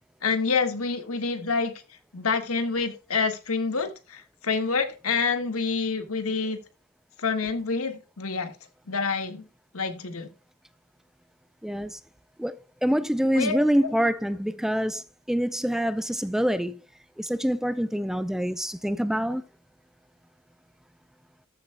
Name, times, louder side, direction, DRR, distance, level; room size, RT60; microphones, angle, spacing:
voice 1, 0.2-1.7 2.1-6.6 7.2-8.5 8.9-9.5 9.7-10.3 13.3-13.9, left 4 dB, 75° left, 1.7 m, -27 dB
voice 2, 11.6-12.0 12.4-16.8 17.2-19.4, equal, ahead, 0.3 m, -26 dB
13.5 x 8.1 x 2.2 m
head